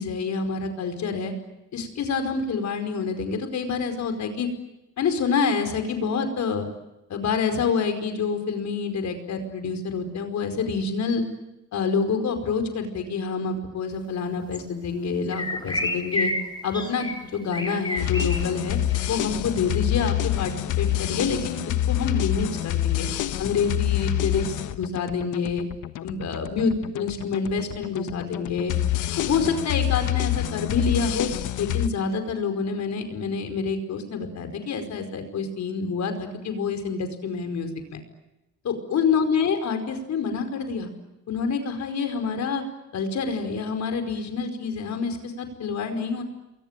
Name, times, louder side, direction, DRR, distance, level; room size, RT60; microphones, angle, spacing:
voice 1, 0.0-1.3 1.7-4.5 5.0-6.7 7.1-11.2 11.7-16.3 16.6-18.8 19.1-23.1 23.4-25.6 26.0-28.7 29.2-31.3 31.6-38.0 38.6-40.9 41.3-42.6 42.9-46.2, left 5 dB, 65° left, 7 dB, 5.0 m, -27 dB
sound 1, 14.5-14.6 15.3-16.4 16.7-17.2 17.5-18.4 18.9-19.1, left 1 dB, 15° left, 4.9 m, -29 dB
sound 2, 18.0-31.9, left 13 dB, 85° left, 1.3 m, -27 dB
28.5 x 23.0 x 9.0 m, 0.95 s
cardioid pair, 90°, 30 cm